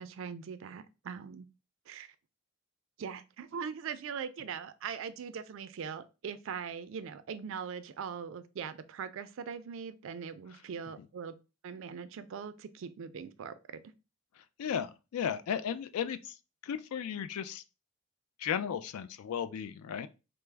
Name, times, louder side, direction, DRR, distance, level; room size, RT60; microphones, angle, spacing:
voice 1, 0.0-1.5 1.9-2.1 3.0-11.3 11.6-13.8, right 6 dB, 60° right, 0.3 m, -41 dB
voice 2, 14.6-16.3 16.6-17.6 18.4-20.1, left 8 dB, 85° left, 0.3 m, -35 dB
3.3 x 2.0 x 3.2 m
head